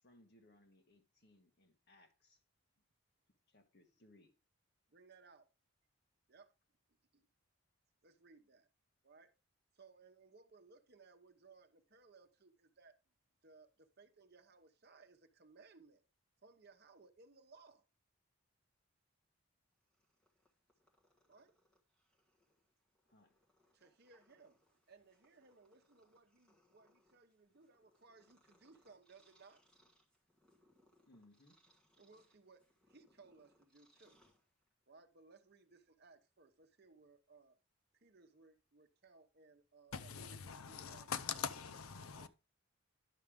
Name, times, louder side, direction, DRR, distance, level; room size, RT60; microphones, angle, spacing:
voice 1, 0.0-2.4 3.5-4.3 23.1-23.4 31.1-31.6, left 1 dB, 50° left, 1.5 m, -66 dB
voice 2, 4.9-5.5 6.3-6.5 7.1-7.3 8.0-8.7 9.0-9.3 9.7-12.9 13.4-16.0 16.4-17.9 21.3-21.5 23.7-29.6 32.0-34.2 34.9-37.6 37.9-41.1 42.0-42.3, right 4 dB, 45° right, 0.9 m, -63 dB
Purr, 19.7-34.9, equal, 5° left, 1.5 m, -75 dB
voice 3, 39.9-42.3, left 7 dB, 85° left, 0.7 m, -43 dB
11.0 x 6.4 x 3.6 m
head